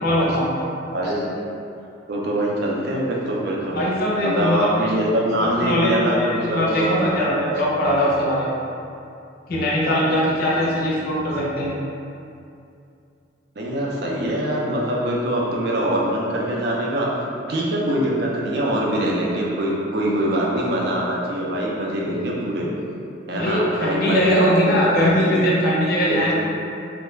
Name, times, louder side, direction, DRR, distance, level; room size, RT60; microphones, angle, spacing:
voice 1, 0.0-0.5 3.7-4.7 5.4-8.6 9.5-11.7 23.3-26.3, equal, 50° left, -5 dB, 0.5 m, -21 dB
voice 2, 0.9-1.2 2.1-3.8 4.2-7.7 9.9-10.1 13.6-17.1 17.5-22.7 23.3-24.3 24.6-25.4 26.1-26.3, right 1 dB, 55° right, -4 dB, 0.4 m, -24 dB
2.3 x 2.1 x 3.1 m, 2.6 s
head